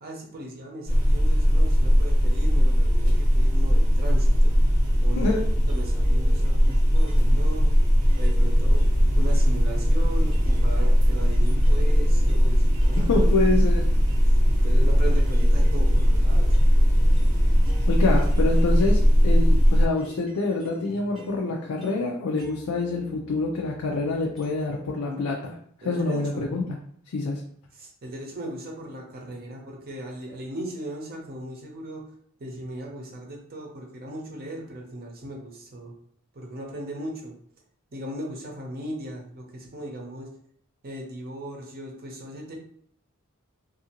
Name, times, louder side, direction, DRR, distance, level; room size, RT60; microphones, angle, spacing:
voice 1, 0.0-4.6 5.0-5.3 5.7-7.7 8.2-8.8 9.2-13.3 14.6-16.6 25.1-25.2 25.8-26.4 27.7-32.0 32.4-35.9 36.3-37.3 37.9-40.3 40.8-42.6, right 1 dB, 45° right, 0 dB, 0.7 m, -37 dB
sound 1, 0.9-19.9, equal, 85° right, 0.8 m, -19 dB
sound 2, 5.7-7.4 8.1-13.2 13.5-24.9, left 4 dB, ahead, 0.9 m, -48 dB
voice 2, 13.0-13.9 17.9-25.5 25.8-26.6 27.1-27.4, left 3 dB, 85° left, 0 dB, 0.4 m, -26 dB
2.6 x 2.4 x 2.8 m, 0.64 s
head